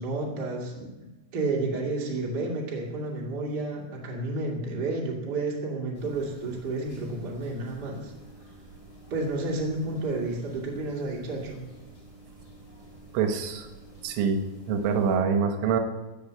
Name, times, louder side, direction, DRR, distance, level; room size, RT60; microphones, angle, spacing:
voice 1, 0.0-8.1 9.1-11.7, right 2 dB, 30° right, -1 dB, 2.1 m, -31 dB
sound 1, 5.9-15.2, right 2 dB, 15° left, 3.6 m, -50 dB
voice 2, 13.1-13.7 14.0-15.8, right 6 dB, 80° right, 5 dB, 3.6 m, -25 dB
16.5 x 6.7 x 7.6 m, 1.1 s
omnidirectional pair, 5.6 m